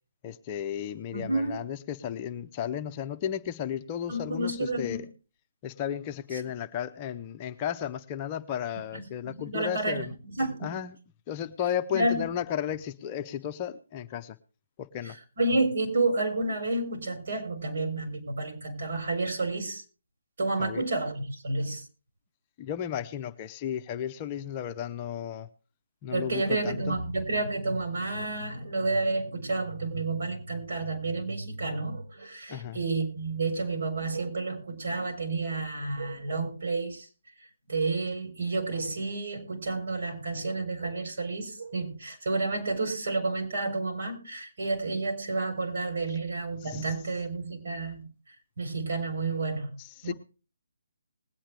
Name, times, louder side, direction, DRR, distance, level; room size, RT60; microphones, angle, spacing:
voice 1, 0.2-5.0 5.6-10.1 10.6-11.0 11.3-14.4 14.8-15.2 20.6-20.9 22.6-25.5 26.0-27.0 32.5-32.8 46.6-46.9 49.8-50.1, left 9 dB, 25° left, 0.6 m, -34 dB
voice 2, 1.1-1.6 4.1-5.0 6.3-6.4 8.9-10.8 11.9-12.3 15.0-19.8 20.4-21.8 26.1-37.1 37.7-48.1 48.6-49.7 50.0-50.1, right 2 dB, 60° right, 4.1 m, -30 dB
20.5 x 8.8 x 3.3 m
figure-of-eight pair, 150°, 0 cm